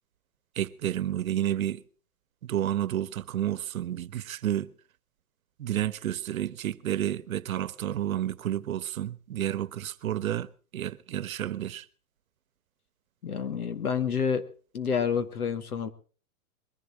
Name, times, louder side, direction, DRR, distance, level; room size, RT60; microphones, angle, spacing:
voice 1, 0.6-1.8 2.4-4.7 5.6-11.9, right 11 dB, 65° right, 1.1 m, -30 dB
voice 2, 13.2-14.4 14.7-15.9, left 6 dB, 80° left, 2.3 m, -28 dB
22.0 x 11.5 x 4.4 m
hypercardioid pair, 140°, 45 cm